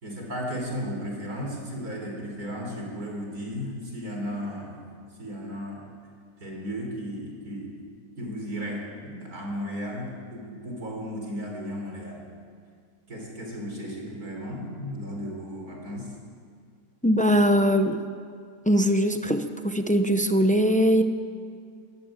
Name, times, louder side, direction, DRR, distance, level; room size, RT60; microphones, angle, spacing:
voice 1, 0.0-4.8 5.2-5.8 6.4-7.7 8.2-12.2 13.1-16.2, equal, 60° right, 0 dB, 4.8 m, -35 dB
voice 2, 17.0-18.0 18.7-21.0, equal, 10° left, 7 dB, 0.3 m, -21 dB
21.0 x 15.0 x 8.9 m, 2.1 s
omnidirectional pair, 1.8 m